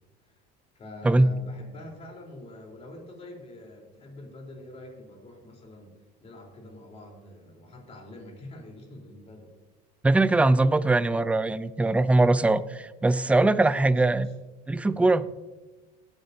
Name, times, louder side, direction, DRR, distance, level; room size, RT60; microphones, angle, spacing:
voice 1, 0.7-9.5 13.6-14.2 14.8-15.2, left 2 dB, 30° left, 0 dB, 3.8 m, -45 dB
voice 2, 10.0-14.3 14.7-15.2, right 2 dB, 5° right, 15 dB, 0.4 m, -21 dB
19.0 x 8.9 x 2.8 m, 1.2 s
supercardioid pair, 110°, 20 cm